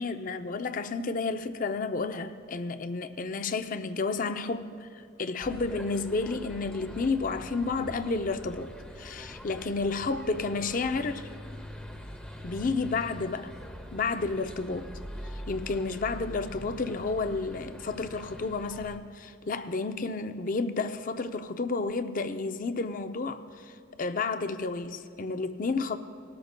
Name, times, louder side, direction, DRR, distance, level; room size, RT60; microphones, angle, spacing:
voice 1, 0.0-4.9 5.2-11.3 12.4-13.5 13.9-14.9 15.3-23.7 24.0-26.0, left 3 dB, 40° left, 0.5 m, -31 dB
sound 1, 5.4-19.0, equal, 5° left, 0.7 m, -44 dB
19.5 x 13.0 x 2.2 m
head